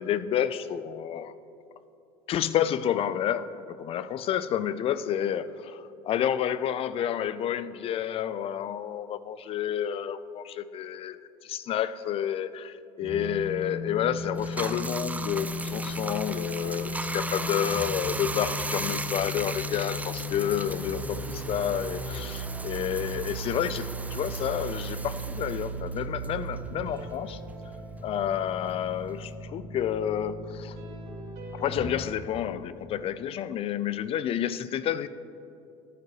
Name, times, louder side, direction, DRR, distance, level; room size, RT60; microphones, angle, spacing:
voice 1, 0.0-1.3 2.3-11.2 11.4-27.4 28.0-30.8 31.5-35.1, left 10 dB, 45° left, 15 dB, 0.4 m, -30 dB
sound 1, 13.0-31.9, equal, 75° right, 2.4 m, -36 dB
Bathtub (filling or washing), 14.4-27.2 27.5-29.3, right 2 dB, 10° right, 0.5 m, -37 dB
14.0 x 10.5 x 3.0 m, 2.7 s
hypercardioid pair, 85°, 13 cm